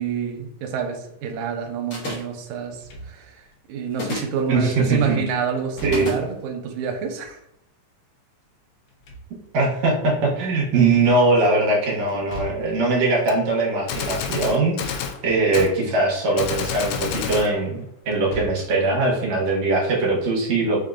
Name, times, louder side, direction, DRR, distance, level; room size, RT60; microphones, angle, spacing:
voice 1, 0.0-7.4, right 6 dB, 80° right, 3 dB, 2.1 m, -28 dB
sound 1, 1.9-2.4 3.9-4.4 5.9-6.2, left 2 dB, 55° left, 1.6 m, -29 dB
Slam / Thump thud, 2.7-3.6 5.6-6.5 8.7-9.8 12.1-12.9 15.0-15.5 15.9-16.0 18.0-18.8, right 1 dB, 70° left, 1.6 m, -38 dB
voice 2, 4.5-5.2 5.8-6.1 9.5-14.9 15.2-20.8, right 3 dB, 65° right, -3 dB, 2.1 m, -21 dB
Gunshot gunfire, 13.3-13.4 13.9-15.2 15.5-15.7 16.4-17.5, left 7 dB, 85° left, 1.5 m, -28 dB
5.1 x 3.6 x 2.5 m, 0.79 s
omnidirectional pair, 3.6 m